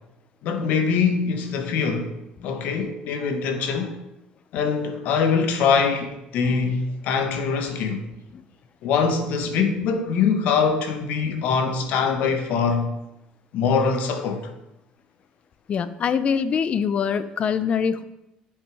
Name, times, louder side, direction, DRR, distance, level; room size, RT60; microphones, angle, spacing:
voice 1, 0.4-2.1 2.4-4.0 4.5-8.1 8.8-13.0 13.5-14.5, left 5 dB, 70° left, 1.4 m, -23 dB
voice 2, 15.7-18.0, left 7 dB, 45° left, 0.7 m, -24 dB
8.0 x 7.3 x 4.9 m
cardioid pair, 105°, 3 cm